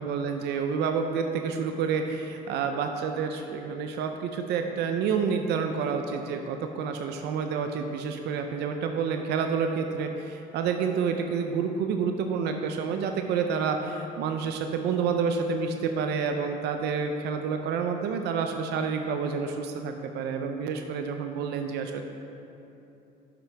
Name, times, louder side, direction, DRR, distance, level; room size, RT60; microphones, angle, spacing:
voice 1, 0.0-22.0, right 6 dB, 80° right, 5 dB, 0.6 m, -29 dB
10.5 x 7.4 x 3.4 m, 2.9 s
cardioid pair, 110°, 17 cm